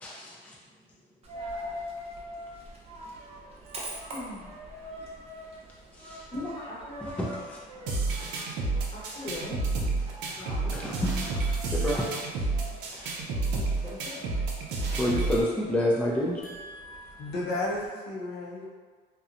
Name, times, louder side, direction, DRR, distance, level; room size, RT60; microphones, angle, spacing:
voice 1, 0.0-0.5 5.9-6.2 7.0-7.6 8.2-8.6 10.7-12.0 12.9-13.1 13.6-13.7 14.9-16.4, left 1 dB, 10° left, -5 dB, 0.4 m, -30 dB
Coin (dropping), 1.2-17.9, equal, 35° right, 0.6 m, -44 dB
voice 2, 4.1-4.5 6.3-7.1 8.9-9.6 10.4-10.9 13.5-14.2, left 2 dB, 30° left, -5 dB, 0.8 m, -39 dB
sound 1, 7.9-15.4, right 3 dB, 90° right, 0.5 m, -30 dB
voice 3, 16.4-18.7, left 2 dB, 75° left, -4 dB, 0.7 m, -34 dB
2.7 x 2.1 x 2.5 m, 1.5 s
cardioid pair, 110°, 17 cm